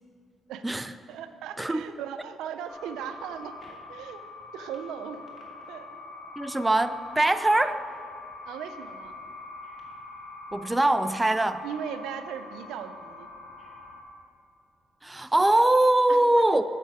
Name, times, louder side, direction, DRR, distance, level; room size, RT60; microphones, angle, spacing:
voice 1, 1.1-4.2 4.5-5.2 5.7-6.0 8.5-9.2 11.6-13.3 16.1-16.5, right 8 dB, 90° right, 9 dB, 0.5 m, -38 dB
sound 1, 2.7-14.0, left 3 dB, 35° left, 2.1 m, -44 dB
voice 2, 6.4-7.8 10.5-11.6 15.0-16.6, right 1 dB, 15° right, 11 dB, 0.3 m, -22 dB
8.3 x 6.7 x 4.8 m, 2.7 s
cardioid pair, 90°, 0 cm